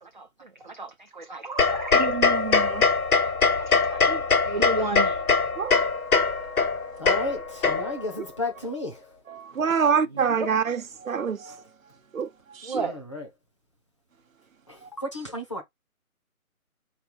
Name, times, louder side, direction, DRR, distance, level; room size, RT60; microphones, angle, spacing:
voice 1, 0.0-2.2 3.2-4.0 4.4-5.2 10.2-10.5 12.6-13.0, right 3 dB, 35° right, 0.4 m, -33 dB
sound 1, 1.6-8.2, left 4 dB, 75° left, 1.0 m, -22 dB
voice 2, 1.9-2.9 4.1-4.2 5.6-5.8 9.3-11.6 12.1-12.8 14.8-14.9, right 6 dB, 65° right, 0.8 m, -27 dB
voice 3, 7.0-9.1 12.8-13.3 14.7-15.6, left 2 dB, 20° left, 0.6 m, -33 dB
4.3 x 3.0 x 3.9 m
figure-of-eight pair, 145°, 43 cm